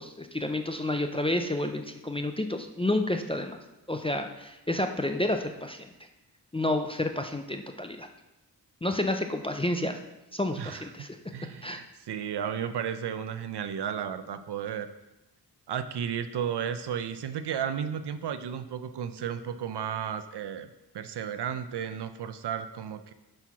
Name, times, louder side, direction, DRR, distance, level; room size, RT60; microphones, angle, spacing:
voice 1, 0.0-3.6 3.9-5.9 6.5-8.1 8.8-10.0 10.3-11.2 11.6-11.8, left 1 dB, 15° left, 5 dB, 0.3 m, -30 dB
voice 2, 11.3-14.9 15.7-20.7 20.9-23.1, right 8 dB, 75° right, 11 dB, 0.6 m, -33 dB
7.8 x 4.6 x 5.8 m, 0.96 s
wide cardioid pair, 170°, 41 cm